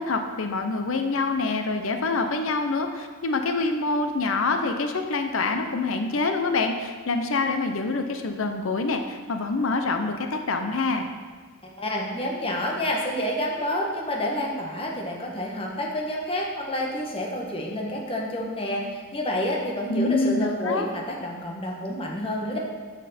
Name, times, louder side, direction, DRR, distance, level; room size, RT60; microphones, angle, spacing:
voice 1, 0.0-11.1 19.9-20.9, left 3 dB, 70° left, 6 dB, 0.7 m, -26 dB
voice 2, 11.8-22.6, left 1 dB, 25° left, -1 dB, 1.3 m, -29 dB
9.9 x 6.2 x 4.3 m, 1.4 s
head